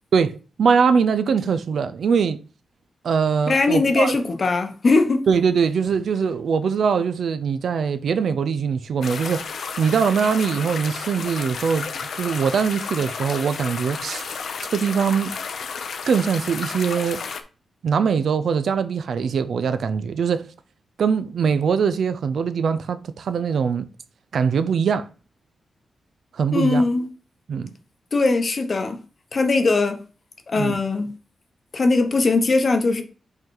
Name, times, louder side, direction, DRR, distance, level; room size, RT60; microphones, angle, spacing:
voice 1, 0.1-2.4 3.0-4.2 5.3-9.5 9.8-11.9 12.2-14.3 14.7-15.4 16.1-17.2 17.8-20.5 21.0-23.9 24.3-25.1 26.3-26.9 27.5-27.7 30.6-30.8, right 6 dB, 65° right, 0.5 m, -22 dB
voice 2, 3.5-5.2 26.5-27.0 28.1-29.0 29.3-30.0 30.5-31.1 31.7-33.0, left 3 dB, 40° left, 0.9 m, -20 dB
sound 1, 9.0-17.4, left 5 dB, 65° left, 0.6 m, -32 dB
5.4 x 3.8 x 4.6 m
wide cardioid pair, 150°, 0 cm